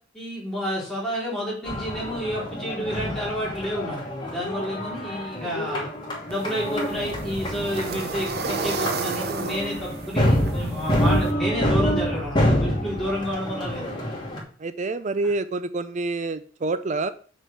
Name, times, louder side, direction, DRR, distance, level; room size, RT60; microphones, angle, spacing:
voice 1, 0.1-5.9 6.3-14.0, equal, 5° left, -7 dB, 3.9 m, -30 dB
sound 1, 1.6-14.4, equal, 25° left, 2.7 m, -27 dB
sound 2, 6.3-11.3, right 4 dB, 55° right, 1.0 m, -32 dB
voice 2, 14.6-17.1, right 3 dB, 40° right, 12 dB, 0.4 m, -27 dB
6.3 x 6.2 x 6.6 m, 0.42 s
head